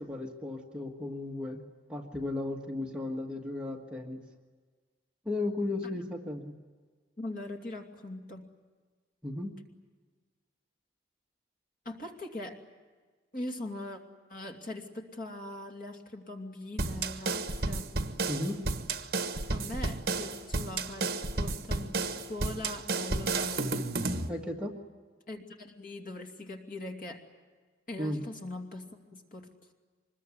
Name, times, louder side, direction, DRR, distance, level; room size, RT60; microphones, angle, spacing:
voice 1, 0.0-1.6 1.9-4.2 5.2-6.5 9.2-9.6 18.3-18.6 24.3-24.7 28.0-28.2, left 2 dB, 5° right, -1 dB, 1.6 m, -35 dB
voice 2, 7.2-8.5 11.8-12.6 13.3-14.0 14.3-17.9 19.5-23.7 25.3-27.2 27.9-29.7, left 2 dB, 50° left, 3 dB, 2.7 m, -41 dB
sound 1, 16.8-24.3, right 3 dB, 55° right, 1.4 m, -32 dB
25.0 x 21.5 x 9.8 m, 1.4 s
head